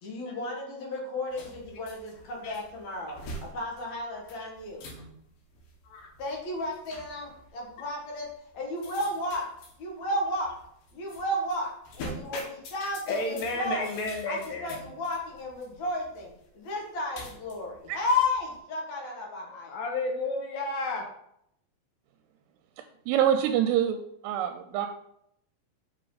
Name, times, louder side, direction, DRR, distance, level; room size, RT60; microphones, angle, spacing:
voice 1, 0.0-3.1 3.5-4.9 6.2-8.3 8.5-9.5 9.8-10.5 10.9-13.9 14.3-16.3 16.5-19.8, left 1 dB, 55° left, -1 dB, 2.2 m, -33 dB
sound 1, 1.3-18.6, left 1 dB, 90° left, 3.8 m, -46 dB
voice 2, 13.1-14.8 19.6-21.1, left 2 dB, 70° left, 1 dB, 2.4 m, -32 dB
voice 3, 23.1-24.9, right 10 dB, 85° right, 6 dB, 2.6 m, -25 dB
6.9 x 5.7 x 4.0 m, 0.75 s
omnidirectional pair, 4.8 m